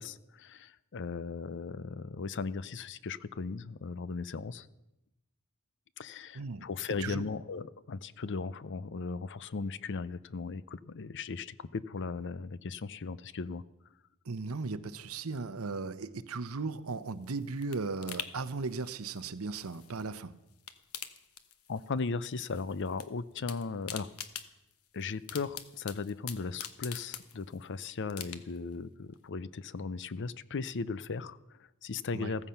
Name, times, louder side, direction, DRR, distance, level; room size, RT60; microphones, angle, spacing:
voice 1, 0.0-4.7 6.0-13.6 21.7-24.1 24.9-32.5, left 4 dB, 55° left, 17 dB, 0.6 m, -37 dB
voice 2, 14.3-20.3 32.1-32.3, right 4 dB, 75° right, 14 dB, 0.8 m, -37 dB
sound 1, 16.9-20.2 20.5-22.0 22.2-23.1 23.3-27.7 28.1-28.7 29.1-29.2, left 9 dB, 85° left, 1.1 m, -45 dB
15.0 x 14.5 x 5.7 m, 0.92 s
head